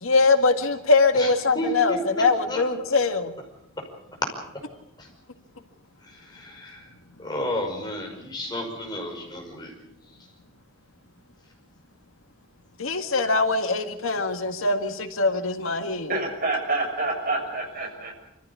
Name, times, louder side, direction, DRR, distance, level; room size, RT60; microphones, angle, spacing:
voice 1, 0.0-3.3 12.8-16.1, left 3 dB, 80° left, 6 dB, 1.9 m, -22 dB
voice 2, 1.5-2.0 2.5-2.6 6.3-6.8 7.2-9.7, left 1 dB, 20° left, 1 dB, 5.5 m, -31 dB
voice 3, 16.1-18.1, right 2 dB, 45° right, 2 dB, 6.7 m, -27 dB
26.0 x 15.0 x 8.4 m, 0.83 s
head